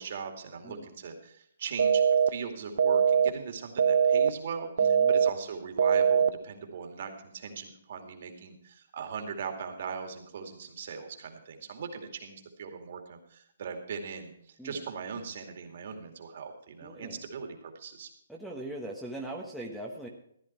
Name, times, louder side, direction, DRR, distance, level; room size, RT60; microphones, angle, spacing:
voice 1, 0.0-18.1, right 6 dB, 50° right, 4 dB, 2.4 m, -40 dB
sound 1, 1.8-2.3 2.8-3.3 3.8-4.3 4.8-5.3 5.8-6.3, right 7 dB, 65° right, 0.7 m, -22 dB
voice 2, 4.8-5.1 14.6-14.9 16.8-17.2 18.3-20.1, right 1 dB, ahead, 0 dB, 1.2 m, -40 dB
14.5 x 10.5 x 4.5 m, 0.69 s
hypercardioid pair, 165°, 0 cm